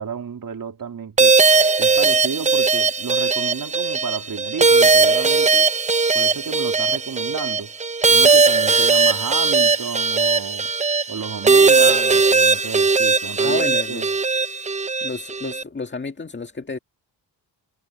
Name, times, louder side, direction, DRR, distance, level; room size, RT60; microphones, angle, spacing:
voice 1, 0.0-1.4 1.8-5.7 6.1-10.7 11.1-14.1, right 6 dB, 45° right, 3.0 m, -32 dB
sound 1, 1.2-15.6, right 4 dB, 15° right, 0.6 m, -18 dB
voice 2, 13.4-14.1 15.0-16.8, left 4 dB, 25° left, 1.9 m, -30 dB
cardioid pair, 80°, 44 cm